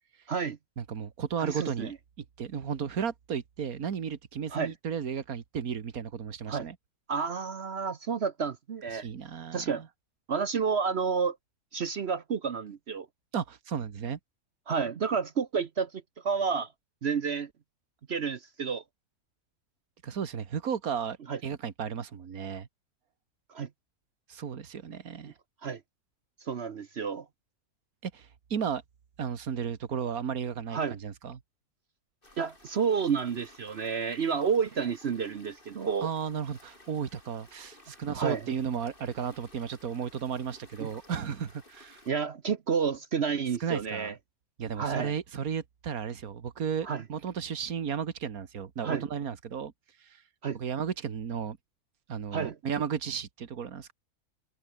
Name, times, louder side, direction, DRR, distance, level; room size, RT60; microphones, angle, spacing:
voice 1, 0.8-1.9 2.4-6.8 8.9-9.9 13.3-14.2 20.0-21.2 21.4-22.7 24.3-25.3 28.0-28.8 29.2-31.4 36.0-42.0 43.6-44.1 44.6-49.7 50.0-50.2 50.5-51.6 52.1-53.9, right 7 dB, 70° right, 2.0 m, -34 dB
voice 2, 1.4-1.9 4.5-4.7 6.5-6.7 7.1-9.1 9.5-9.8 10.3-11.4 11.7-13.1 14.7-15.9 16.2-16.7 17.0-17.5 18.1-18.8 21.3-21.4 23.5-23.7 25.2-25.3 25.6-25.8 26.5-27.2 30.7-30.9 32.4-36.1 38.1-38.4 40.8-40.9 42.1-44.1 44.8-45.1 46.8-47.0 48.8-49.0 50.4-50.6 52.3-52.6, right 6 dB, 50° right, 1.0 m, -30 dB
sound 1, 32.2-42.1, left 1 dB, 35° left, 5.1 m, -56 dB
omnidirectional pair, 1.6 m